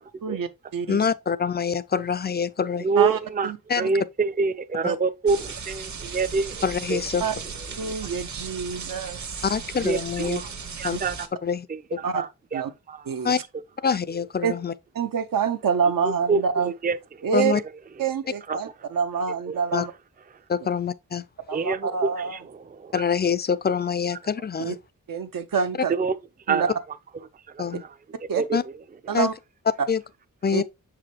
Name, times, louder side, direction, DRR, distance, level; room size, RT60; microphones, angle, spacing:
voice 1, 0.2-1.1 3.0-3.9 4.8-5.0 7.2-7.3 7.8-9.4 10.2-10.4 10.9-11.0 12.0-12.2 12.5-12.7 13.1-13.4 14.4-14.5 14.9-16.7 17.2-17.5 18.0-19.9 21.5-22.4 24.6-24.7 25.1-25.9 26.5-26.7 28.3-28.4 29.1-29.3 30.5-30.6, right 6 dB, 75° right, 0.8 m, -27 dB
voice 2, 0.9-2.9 3.7-3.8 6.6-7.2 9.4-10.4 10.8-11.0 11.4-11.7 13.2-13.4 13.8-14.7 17.3-17.6 19.7-19.9 20.5-21.2 22.9-24.8 27.6-27.8 28.5-28.6 29.1-29.3 29.9-30.0 30.4-30.6, left 6 dB, 30° left, 0.4 m, -25 dB
voice 3, 2.8-3.5 3.8-6.5 6.9-7.0 7.8-7.9 9.8-10.0 10.8-11.1 12.0-12.6 12.9-13.0 16.3-17.0 18.5-18.6 21.5-22.1 22.8-22.9 25.9-26.1 26.5-26.7 28.4-28.5, right 4 dB, 25° right, 0.5 m, -25 dB
sound 1, 5.3-11.3, right 5 dB, 55° right, 1.1 m, -37 dB
6.6 x 4.9 x 2.8 m
wide cardioid pair, 90°, 34 cm